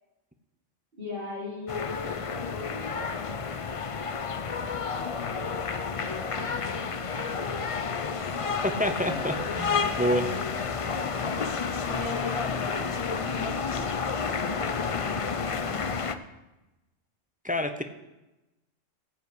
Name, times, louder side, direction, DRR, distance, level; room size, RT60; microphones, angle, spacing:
voice 1, 0.9-4.0 4.3-4.6 5.0-8.0 8.3-8.5 9.1-10.0 11.8-13.9 14.2-15.9, left 2 dB, 45° right, -6 dB, 4.6 m, -41 dB
sound 1, 1.7-16.2, left 5 dB, 40° left, 0.5 m, -30 dB
voice 2, 8.6-10.3 17.4-17.8, equal, 10° right, 7 dB, 0.5 m, -28 dB
15.5 x 5.8 x 8.0 m, 1.0 s
omnidirectional pair, 1.3 m